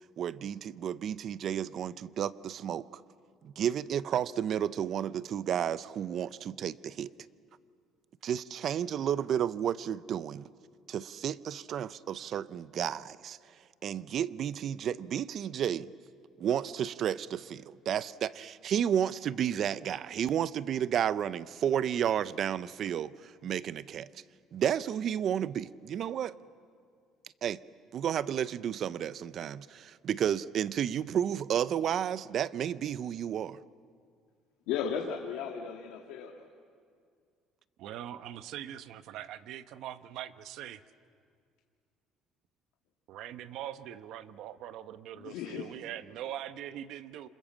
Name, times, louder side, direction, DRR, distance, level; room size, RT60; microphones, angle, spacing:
voice 1, 0.2-3.0 3.4-7.1 8.2-10.4 10.9-13.4 13.8-15.9 16.4-24.1 24.5-26.4 27.4-27.6 27.9-33.6, right 9 dB, 50° right, 16 dB, 0.7 m, -32 dB
voice 2, 34.7-36.5 45.1-45.7, left 7 dB, 85° left, 1 dB, 1.9 m, -35 dB
voice 3, 37.8-40.8 43.1-47.3, right 11 dB, 70° right, 11 dB, 1.1 m, -42 dB
28.0 x 27.0 x 7.5 m, 2.2 s
cardioid pair, 115°, 0 cm